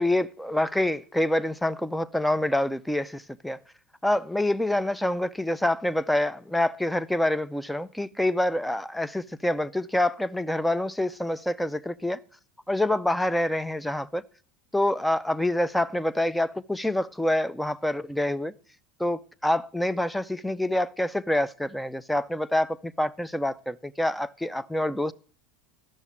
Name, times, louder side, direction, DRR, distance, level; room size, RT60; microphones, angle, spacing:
voice 1, 0.0-3.6 4.0-12.2 12.7-14.2 14.7-18.5 19.0-25.1, left 1 dB, 5° left, 0.4 m, -26 dB
12.5 x 6.5 x 7.2 m
supercardioid pair, 130°, 0 cm